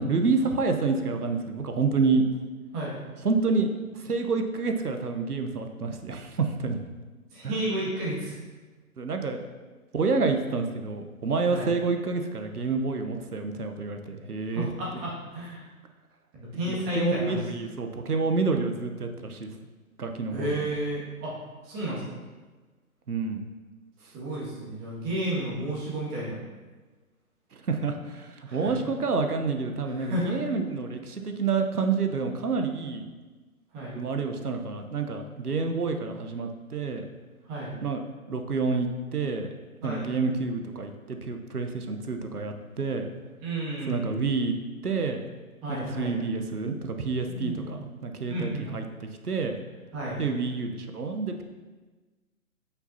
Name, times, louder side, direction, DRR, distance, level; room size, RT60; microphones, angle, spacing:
voice 1, 0.0-2.2 3.2-3.7 4.0-6.8 7.4-7.6 9.0-9.4 9.9-14.7 16.7-19.5 20.0-20.7 23.1-23.5 27.5-33.0 33.9-37.1 37.8-38.0 38.3-39.5 39.8-43.1 43.9-44.5 44.8-45.2 45.7-48.8 49.2-49.6 50.2-51.4, right 4 dB, 90° right, 5 dB, 0.9 m, -28 dB
voice 2, 7.3-8.3 11.5-11.7 14.5-15.7 16.3-17.5 20.3-21.3 21.6-22.2 24.1-26.4 28.4-28.7 29.9-30.4 33.7-33.9 37.5-37.7 39.8-40.1 43.4-44.2 45.6-46.1 47.2-47.8 48.3-48.7 49.9-50.2, right 1 dB, 20° right, -6 dB, 1.9 m, -32 dB
9.8 x 5.8 x 2.7 m, 1.3 s
figure-of-eight pair, 135°, 44 cm